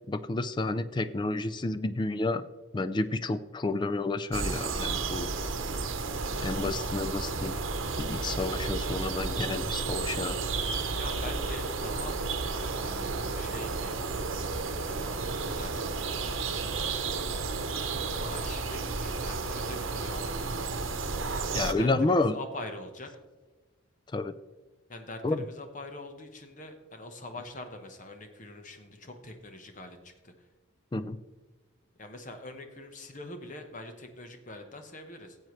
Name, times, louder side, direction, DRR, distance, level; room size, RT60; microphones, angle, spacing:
voice 1, 0.1-2.4 2.7-5.3 6.4-7.6 8.0-10.4 21.5-22.4 24.1-24.3 25.2-25.4 30.9-31.2, left 2 dB, 20° left, 12 dB, 0.3 m, -30 dB
sound 1, 4.3-21.7, right 4 dB, 80° right, 0.9 m, -32 dB
voice 2, 10.9-14.0 14.7-15.9 18.2-20.9 21.5-23.1 24.9-30.3 32.0-35.4, left 2 dB, 40° left, 6 dB, 1.1 m, -44 dB
15.0 x 7.7 x 3.2 m, 1.2 s
head